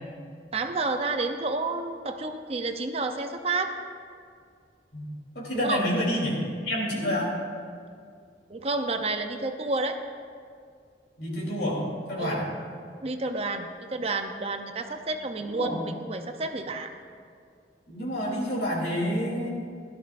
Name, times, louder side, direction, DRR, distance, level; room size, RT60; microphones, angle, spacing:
voice 1, 0.5-3.7 5.5-5.8 8.5-10.0 12.2-12.4 13.0-16.9, right 3 dB, 35° right, 6 dB, 0.6 m, -30 dB
voice 2, 5.3-6.4 6.6-7.3 11.2-11.8 12.1-12.5 15.4-15.8 17.9-19.5, equal, 70° left, -3 dB, 3.3 m, -28 dB
16.5 x 12.5 x 2.5 m, 2.2 s
head